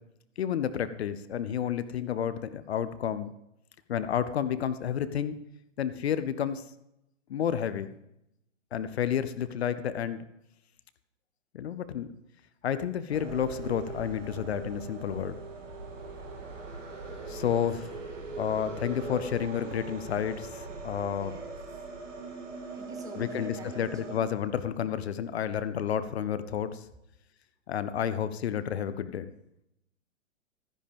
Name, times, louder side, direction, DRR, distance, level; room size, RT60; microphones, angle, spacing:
voice 1, 0.4-3.3 3.9-5.4 5.8-6.6 7.3-7.9 8.7-10.2 11.5-12.1 12.6-15.4 17.3-18.0 18.4-21.3 23.2-26.9 27.7-29.3, left 9 dB, 55° left, 13 dB, 0.8 m, -30 dB
sound 1, 13.1-24.2, right 4 dB, 70° right, 2.4 m, -41 dB
voice 2, 17.2-17.7 21.1-21.8 22.7-24.3, right 3 dB, 10° right, 5 dB, 0.7 m, -48 dB
13.0 x 10.0 x 3.5 m, 0.83 s
figure-of-eight pair, 125°, 38 cm